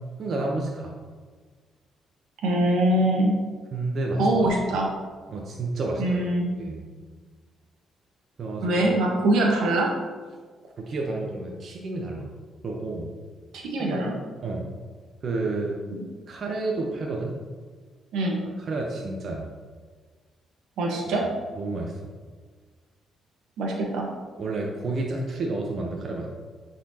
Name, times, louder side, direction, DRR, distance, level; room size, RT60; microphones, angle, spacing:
voice 1, 0.2-0.9 3.7-4.3 5.3-6.3 6.6-6.8 8.4-8.8 10.6-12.3 12.6-13.1 13.8-14.0 14.4-14.7 15.2-15.8 16.3-17.4 18.6-19.5 21.1-21.2 21.6-22.0 24.4-26.3, right 2 dB, 55° right, -1 dB, 0.8 m, -30 dB
voice 2, 2.4-3.3 4.2-4.9 6.0-6.5 8.6-9.9 13.5-14.1 15.9-16.0 18.1-18.4 20.8-21.2 23.6-24.1, right 1 dB, 85° right, -1 dB, 1.2 m, -23 dB
8.9 x 4.2 x 2.8 m, 1.5 s
cardioid pair, 90°, 0 cm